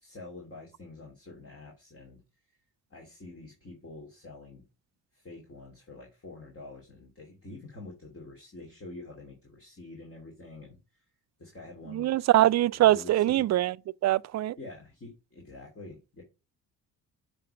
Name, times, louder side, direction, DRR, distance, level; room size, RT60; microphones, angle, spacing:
voice 1, 0.0-2.2 2.5-2.6 2.9-4.6 5.1-11.0 11.4-12.3 12.7-13.5 14.6-16.2, left 2 dB, 25° left, 2.6 m, -47 dB
voice 2, 11.9-13.8 14.0-14.6, right 14 dB, 35° right, 0.4 m, -23 dB
7.5 x 3.5 x 5.1 m
hypercardioid pair, 45°, 49 cm